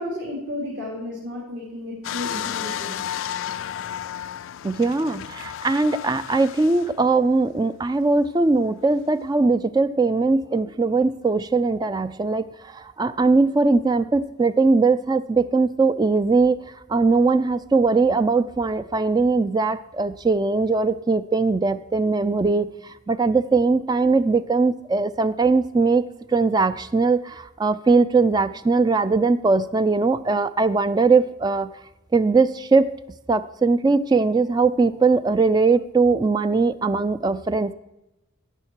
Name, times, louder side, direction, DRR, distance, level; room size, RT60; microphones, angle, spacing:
voice 1, 0.0-3.0, left 1 dB, 60° right, -4 dB, 2.6 m, -32 dB
sound 1, 2.0-7.0 7.6-7.7, left 10 dB, 60° left, 0.3 m, -32 dB
voice 2, 4.6-16.6 16.9-31.7 32.1-32.9 33.3-37.7, right 3 dB, 20° right, 13 dB, 0.3 m, -20 dB
17.0 x 6.5 x 4.5 m, 0.93 s
head